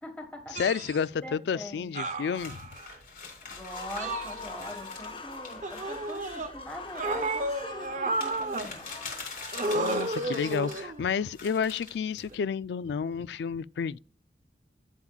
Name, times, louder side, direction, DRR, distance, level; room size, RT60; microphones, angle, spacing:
voice 1, 0.0-0.7 1.2-1.9 3.5-8.9 10.3-10.7, equal, 10° left, 1.5 m, -43 dB
voice 2, 0.5-2.6 9.7-14.0, left 6 dB, 70° left, 0.3 m, -30 dB
sound 1, 0.6-1.0 2.0-2.9 4.0-4.8 5.6-6.5 6.9-8.7 9.5-11.0 12.2-12.3, right 2 dB, 40° right, 0.8 m, -32 dB
sound 2, 2.4-10.9 11.3-12.4, left 4 dB, 50° left, 3.7 m, -44 dB
sound 3, 3.5-11.6, left 4 dB, 30° left, 0.8 m, -43 dB
11.5 x 7.2 x 2.4 m
head